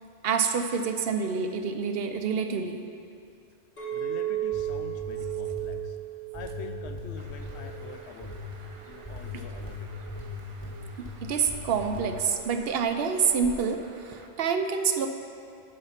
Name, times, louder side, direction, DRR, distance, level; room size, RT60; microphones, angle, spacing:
voice 1, 0.2-2.8 9.3-9.4 11.0-15.1, right 6 dB, 65° right, 6 dB, 0.8 m, -27 dB
Chink clink, 3.8-8.1 8.6-8.9, right 13 dB, 50° left, 2.0 m, -34 dB
voice 2, 3.9-6.0 6.3-8.4 8.8-9.9, left 6 dB, 75° left, 6 dB, 0.9 m, -45 dB
sound 1, 4.4-5.8 6.3-7.7 8.2-8.6 9.1-11.2 11.5-12.1, left 3 dB, 20° left, 1.7 m, -39 dB
Bird, 7.2-14.3, right 4 dB, 40° right, 0.5 m, -48 dB
11.0 x 4.7 x 5.7 m, 2.5 s
omnidirectional pair, 1.1 m